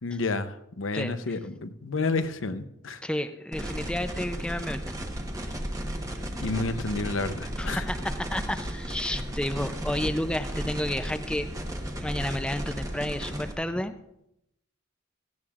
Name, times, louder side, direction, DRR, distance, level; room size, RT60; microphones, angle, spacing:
voice 1, 0.0-3.0 6.4-7.9, left 3 dB, 90° left, 9 dB, 0.8 m, -30 dB
voice 2, 3.0-5.0 7.6-11.5 12.0-13.9, left 1 dB, 5° left, 9 dB, 0.5 m, -31 dB
sound 1, 3.5-13.5, equal, 20° right, 1.1 m, -34 dB
17.0 x 14.5 x 2.4 m, 0.81 s
head